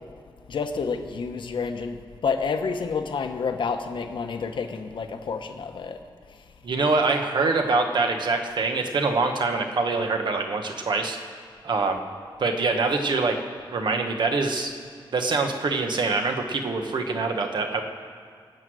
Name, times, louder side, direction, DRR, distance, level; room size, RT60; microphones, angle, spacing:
voice 1, 0.5-2.0 2.2-6.0, left 5 dB, 70° left, 6 dB, 1.1 m, -29 dB
voice 2, 6.6-11.2 11.6-12.0 12.4-13.4 13.7-14.7 15.1-17.8, right 3 dB, 60° right, 5 dB, 1.3 m, -24 dB
21.5 x 8.0 x 6.3 m, 2.2 s
wide cardioid pair, 180°, 9 cm